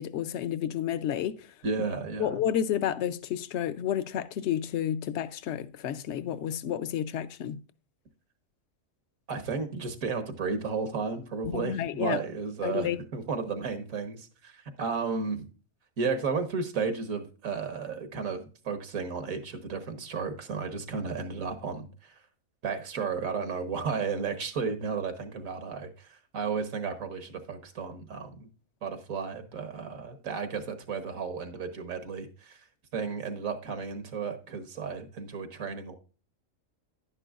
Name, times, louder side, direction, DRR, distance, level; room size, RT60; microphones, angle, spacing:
voice 1, 0.0-1.5 2.2-7.6 11.4-12.2 12.6-13.0, left 10 dB, 65° left, 0.8 m, -30 dB
voice 2, 1.6-2.4 9.3-15.5 16.0-22.2 22.6-28.5 28.8-32.6 32.9-36.0, right 5 dB, 80° right, 1.6 m, -33 dB
11.0 x 9.9 x 2.4 m
omnidirectional pair, 1.4 m